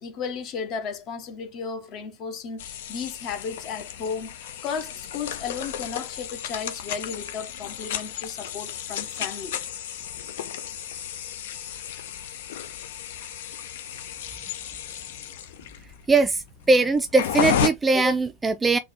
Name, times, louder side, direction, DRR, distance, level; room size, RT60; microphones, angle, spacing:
voice 1, 0.0-4.3 4.6-9.6, left 6 dB, 35° left, 0.8 m, -34 dB
sound 1, 2.6-17.7, left 9 dB, 55° left, 0.4 m, -33 dB
voice 2, 16.1-18.8, right 3 dB, 10° right, 0.3 m, -21 dB
4.0 x 2.3 x 2.9 m
figure-of-eight pair, 90°, 0 cm